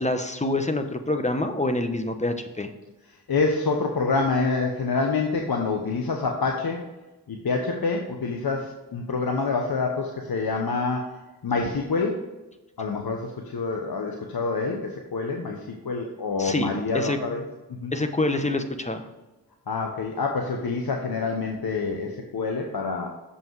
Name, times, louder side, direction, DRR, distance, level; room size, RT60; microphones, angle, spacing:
voice 1, 0.0-2.7 16.4-16.7 16.9-17.2 17.9-19.1, left 2 dB, 15° left, 7 dB, 1.0 m, -26 dB
voice 2, 3.3-6.8 7.3-11.1 11.4-12.2 12.8-15.6 15.8-17.5 17.8-17.9 19.7-23.1, left 4 dB, 60° left, 2 dB, 1.0 m, -27 dB
7.1 x 5.6 x 4.6 m, 1.1 s
cardioid pair, 40°, 42 cm